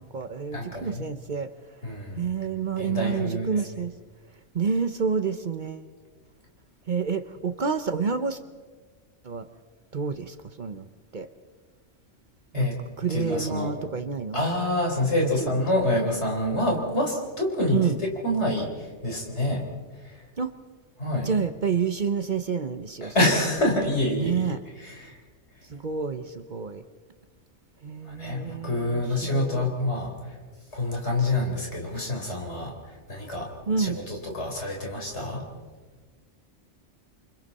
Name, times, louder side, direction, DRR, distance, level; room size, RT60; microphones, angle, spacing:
voice 1, 0.0-1.5 2.2-3.9 4.5-5.9 6.9-8.4 9.2-9.5 9.9-11.3 12.5-14.4 15.2-15.6 17.7-18.0 20.4-20.5 21.2-23.1 24.2-24.6 25.7-26.8 27.8-29.6 33.7-34.0, right 6 dB, 45° right, 10 dB, 0.9 m, -29 dB
voice 2, 0.5-1.0 1.8-2.2 2.8-3.6 12.5-12.8 13.1-13.7 14.3-19.6 20.0-20.2 21.0-21.3 23.0-25.2 28.1-30.1 30.7-32.7 33.1-33.5 33.8-35.4, left 1 dB, 70° left, 1 dB, 4.3 m, -27 dB
29.0 x 24.5 x 4.2 m, 1.4 s
omnidirectional pair, 1.2 m